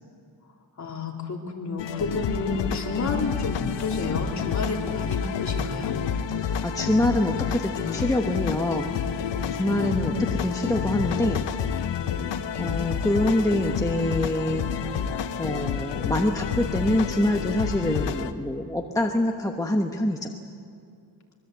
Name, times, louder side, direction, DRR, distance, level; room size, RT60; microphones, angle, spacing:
voice 1, 0.8-6.0 9.8-10.1, left 3 dB, 40° left, 0 dB, 3.5 m, -31 dB
sound 1, 1.8-18.3, left 7 dB, 80° left, 1.1 m, -29 dB
voice 2, 6.4-8.9 9.5-10.1 10.4-11.4 12.6-14.7 15.4-20.3, left 1 dB, 10° left, 2 dB, 1.2 m, -25 dB
24.5 x 22.0 x 8.1 m, 2.4 s
wide cardioid pair, 140°, 42 cm